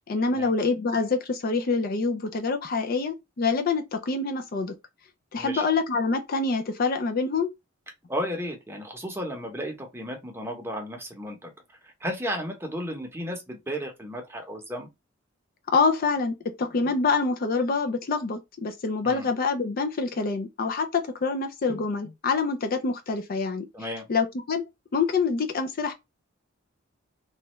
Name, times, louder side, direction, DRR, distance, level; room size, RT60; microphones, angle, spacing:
voice 1, 0.1-4.7 5.3-7.5 15.7-23.6 24.1-25.9, left 4 dB, 45° left, 0.4 m, -26 dB
voice 2, 8.1-11.5 11.8-14.9 19.0-19.3 23.7-24.1, equal, 10° right, 0.8 m, -34 dB
3.1 x 2.3 x 3.0 m
head